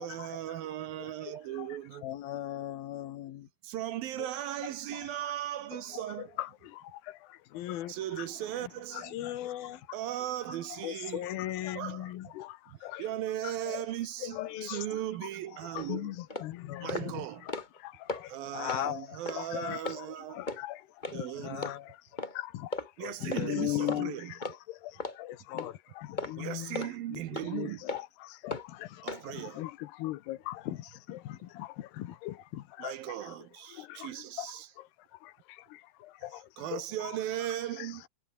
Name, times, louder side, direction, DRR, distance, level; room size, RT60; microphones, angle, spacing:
voice 1, 0.0-2.1 3.6-6.4 7.9-9.2 9.9-11.3 11.7-12.1 12.7-16.2 16.8-17.5 18.3-20.6 21.1-21.7 23.0-24.4 26.4-27.9 29.0-29.7 32.8-34.7 36.3-38.1, right 13 dB, 70° right, 2.7 m, -37 dB
voice 2, 1.3-1.7 5.7-6.0 6.4-7.4 7.7-7.9 8.2-8.3 8.9-9.5 11.2-11.3 12.4-13.0 13.7-13.8 14.2-14.8 15.9-16.9 17.5-17.6 17.8-18.4 19.3-20.8 21.7-21.8 22.3-22.7 23.4-27.2 27.5-29.2 29.5-30.7 31.6-31.8 32.2-32.4 32.8-32.9 33.7-34.1 34.4-34.5 34.8-34.9 35.2-36.8, left 16 dB, 85° left, 3.0 m, -40 dB
voice 3, 2.0-3.5 7.5-7.9 9.1-9.8 10.8-12.3 14.2-14.8 16.5-17.2 18.5-19.1 19.5-19.8 21.1-21.9 22.5-22.7 23.0-23.7 25.3-26.2 28.5-29.0 29.3-29.5 30.7-32.6, left 13 dB, 70° left, 2.9 m, -39 dB
sound 1, 15.7-15.9 16.3-16.5 16.9-17.1 17.4-17.8 18.1-18.2 18.7-18.8 19.3-19.4 19.8-20.0 20.5-20.6 21.0-21.2 21.6-21.7 22.2-22.3 22.7-22.9 23.3-23.5 23.9-24.0 24.4-24.6 25.0-25.2 25.6-25.7 26.2-26.3 26.7-26.9 27.3-27.5 27.9-28.0 28.5-28.6 29.1-29.2, left 2 dB, 20° left, 1.3 m, -36 dB
omnidirectional pair, 4.7 m